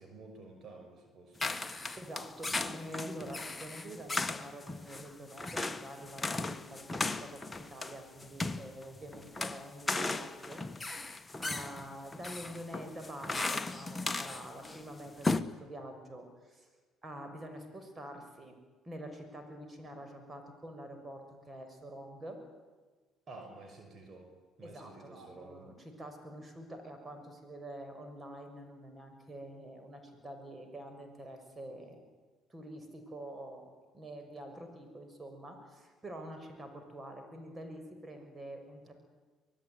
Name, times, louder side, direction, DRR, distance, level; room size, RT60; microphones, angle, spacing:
voice 1, 0.0-1.5 23.3-24.3 24.6-25.7, right 3 dB, 45° right, 4 dB, 6.0 m, -51 dB
sound 1, 1.4-14.8 15.1-15.4, left 3 dB, 15° left, 1.6 m, -36 dB
voice 2, 2.0-10.6 10.9-16.7 17.0-18.6 18.8-22.4 24.6-32.1 32.5-38.9, right 1 dB, 25° right, 6 dB, 6.3 m, -47 dB
24.0 x 19.5 x 9.6 m, 1.3 s
hypercardioid pair, 60°, 0 cm